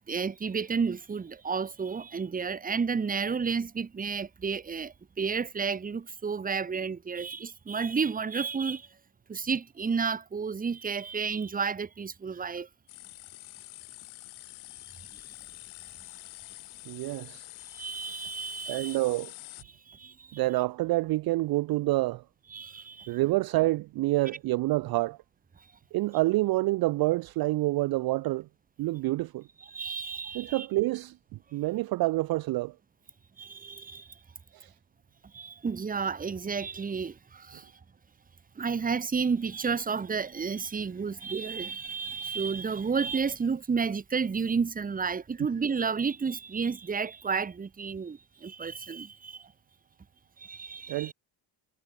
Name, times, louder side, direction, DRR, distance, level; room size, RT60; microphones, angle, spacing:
voice 1, 0.0-8.9 9.3-12.7 17.7-19.0 19.7-20.4 22.5-23.2 29.7-30.7 33.4-34.2 35.3-37.7 38.6-49.5 50.4-51.1, right 5 dB, 20° right, 0.9 m, -31 dB
sound 1, 12.9-19.6, left 22 dB, 90° left, 7.0 m, -46 dB
voice 2, 16.9-17.5 18.7-19.3 20.3-22.2 23.1-25.2 25.9-28.5 28.8-29.5 30.3-32.8 34.5-34.7 50.9-51.1, right 19 dB, 50° right, 0.5 m, -28 dB
cardioid pair, 100°, 47 cm